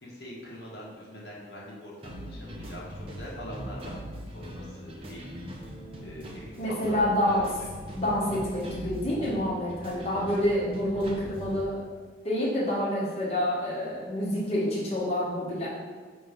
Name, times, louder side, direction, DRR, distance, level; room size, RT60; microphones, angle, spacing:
voice 1, 0.0-5.4 6.0-7.4, left 1 dB, 70° left, -5 dB, 1.4 m, -43 dB
sound 1, 2.0-11.6, equal, 30° right, 0.8 m, -41 dB
voice 2, 6.6-7.5 8.0-11.8 12.2-15.7, left 1 dB, 35° left, -7 dB, 1.2 m, -28 dB
6.0 x 3.1 x 5.1 m, 1.5 s
head